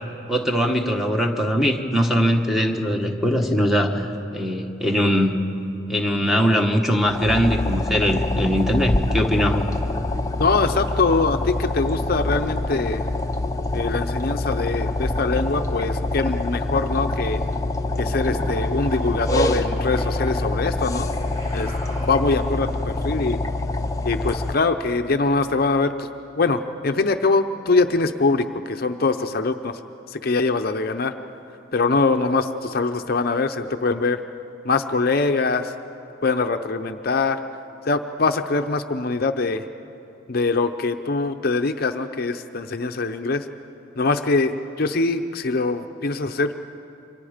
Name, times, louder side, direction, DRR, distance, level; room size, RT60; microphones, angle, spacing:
voice 1, 0.3-5.4 5.9-9.7, equal, ahead, 3 dB, 1.3 m, -21 dB
sound 1, 7.1-24.6, left 2 dB, 15° left, 0.7 m, -25 dB
voice 2, 10.4-13.0 13.7-17.4 18.0-21.1 21.5-21.7 22.0-23.4 24.0-26.1 26.4-29.8 30.1-31.1 31.7-34.2 34.6-35.7 36.2-37.4 37.9-39.6 40.3-43.4 44.0-46.5, left 3 dB, 50° left, 7 dB, 0.6 m, -23 dB
sound 2, 17.9-20.3 21.0-22.6, right 1 dB, 40° right, 6.2 m, -41 dB
28.5 x 24.5 x 5.1 m, 2.8 s
head